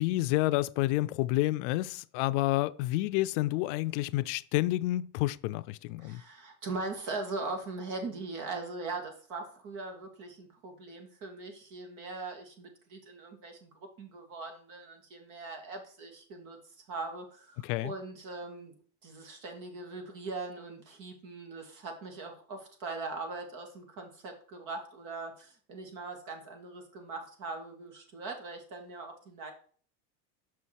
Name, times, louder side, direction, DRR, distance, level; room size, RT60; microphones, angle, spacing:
voice 1, 0.0-6.2 17.6-17.9, left 17 dB, 75° left, 0.5 m, -29 dB
voice 2, 6.0-13.7 14.0-16.6 16.9-18.7 19.0-29.5, right 3 dB, 55° right, 2.5 m, -40 dB
6.2 x 5.7 x 4.6 m
supercardioid pair, 115°, 36 cm